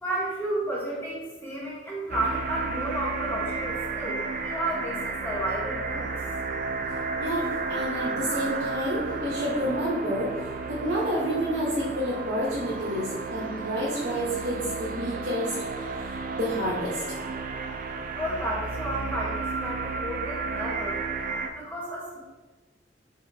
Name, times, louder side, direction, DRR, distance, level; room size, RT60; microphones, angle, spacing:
voice 1, 0.0-6.2 18.1-21.0 21.5-22.2, right 1 dB, 10° left, -5 dB, 1.1 m, -32 dB
sound 1, 2.1-21.5, right 4 dB, 50° right, 0.4 m, -32 dB
voice 2, 7.2-10.3 10.7-15.6 16.3-17.0, equal, 70° right, -6 dB, 0.9 m, -29 dB
4.2 x 4.2 x 2.7 m, 1.2 s
head